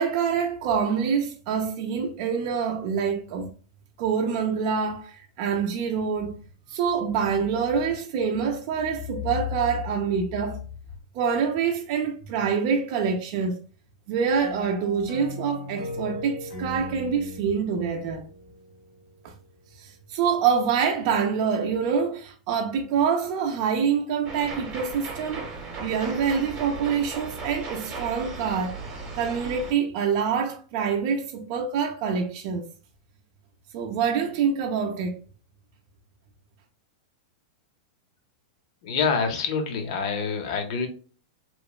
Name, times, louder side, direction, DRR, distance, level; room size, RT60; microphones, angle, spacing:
voice 1, 0.0-3.5 4.0-6.4 6.7-10.6 11.1-13.6 14.1-18.3 19.2-19.3 19.8-25.5 25.8-28.8 29.2-32.7 33.7-35.2, right 6 dB, 45° right, 0.4 m, -26 dB
sound 1, 14.4-19.0, left 1 dB, 90° left, 1.1 m, -38 dB
sound 2, 24.3-29.7, right 3 dB, 30° right, 0.8 m, -36 dB
voice 2, 38.8-40.9, left 5 dB, 55° left, 0.6 m, -26 dB
2.9 x 2.1 x 2.3 m
supercardioid pair, 145°, 4 cm